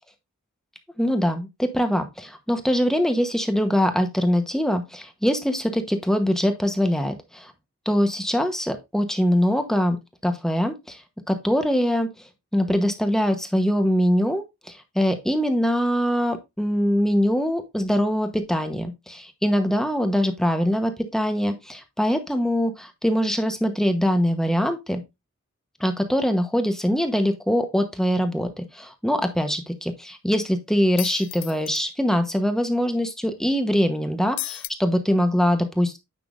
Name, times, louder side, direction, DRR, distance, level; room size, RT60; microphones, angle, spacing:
voice 1, 1.0-7.5 7.9-10.0 10.2-11.0 11.3-12.1 12.5-25.0 25.8-36.0, equal, ahead, 7 dB, 1.0 m, -23 dB
sound 1, 31.0-31.8 34.4-34.7, left 18 dB, 65° left, 0.4 m, -33 dB
9.2 x 6.0 x 2.5 m, 0.22 s
head